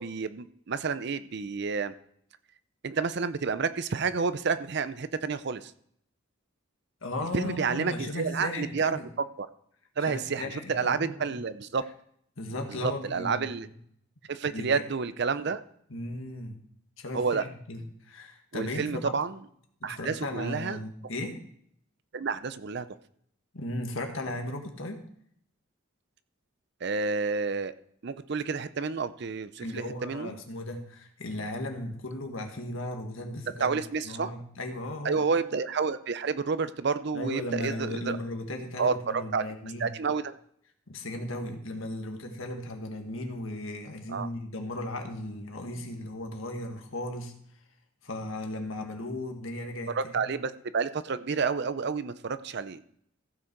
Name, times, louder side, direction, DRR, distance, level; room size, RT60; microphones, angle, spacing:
voice 1, 0.0-1.9 2.8-5.7 7.3-9.0 9.4-9.5 10.0-11.8 12.8-13.7 14.3-15.6 17.1-17.4 18.5-19.4 19.8-20.8 22.1-22.9 26.8-27.7 28.0-30.4 33.6-34.3 35.0-38.2 38.8-39.4 39.8-40.3 44.1-44.3 49.9-52.8, right 5 dB, 55° right, 13 dB, 0.5 m, -30 dB
voice 2, 7.0-9.1 10.0-11.4 12.4-13.7 14.5-14.8 15.9-16.6 17.0-19.2 19.8-21.4 23.5-25.0 29.6-35.3 37.1-39.9 40.9-47.3 48.0-50.4, left 1 dB, 75° left, 4 dB, 1.7 m, -36 dB
15.0 x 6.5 x 4.6 m, 0.66 s
head